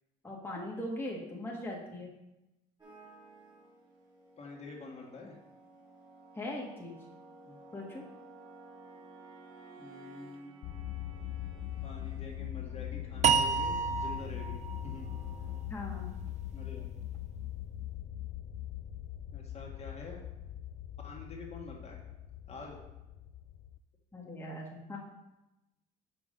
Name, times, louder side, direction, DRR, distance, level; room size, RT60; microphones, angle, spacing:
voice 1, 0.2-2.1 6.4-7.0 7.7-8.0 15.7-16.1 24.1-25.0, left 1 dB, 10° left, -3 dB, 1.5 m, -40 dB
sound 1, 2.8-15.6, right 3 dB, 25° right, 2.6 m, -55 dB
voice 2, 4.4-5.4 7.4-7.6 9.8-10.6 11.8-15.1 16.5-16.9 19.3-20.2 21.0-22.0 22.5-22.8, left 3 dB, 40° left, -1 dB, 1.5 m, -47 dB
sound 2, 10.6-23.8, left 12 dB, 60° left, 0.4 m, -41 dB
sound 3, 13.2-16.4, right 6 dB, 45° right, 0.5 m, -31 dB
6.0 x 5.6 x 5.1 m, 0.96 s
cardioid pair, 110°, 17 cm